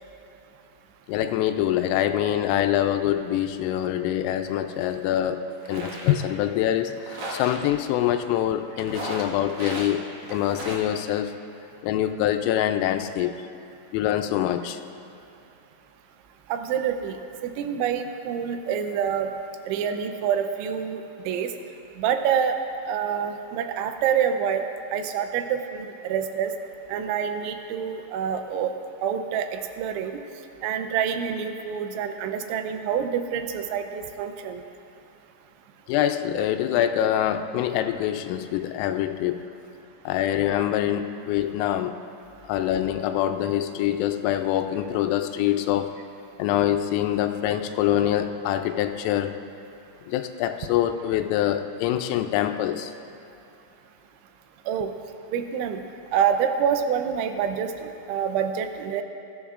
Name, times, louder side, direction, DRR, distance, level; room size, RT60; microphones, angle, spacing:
voice 1, 1.1-11.3 11.8-13.4 13.9-14.8 35.9-39.4 40.1-41.9 42.4-45.9 46.4-49.4 50.1-52.9, left 11 dB, 85° left, 7 dB, 3.2 m, -25 dB
sound 1, 4.8-4.9 5.5-6.2 7.0-7.6 8.8-9.9 10.2-10.9, right 1 dB, 65° right, 1.9 m, -35 dB
voice 2, 16.5-17.2 17.4-19.3 19.7-21.5 22.0-22.6 22.9-24.6 24.9-26.5 26.9-28.7 29.0-30.2 30.6-34.6 54.7-54.9 55.3-55.8 56.1-59.0, right 8 dB, 80° right, 7 dB, 2.8 m, -27 dB
21.0 x 13.5 x 2.5 m, 2.8 s
omnidirectional pair, 5.9 m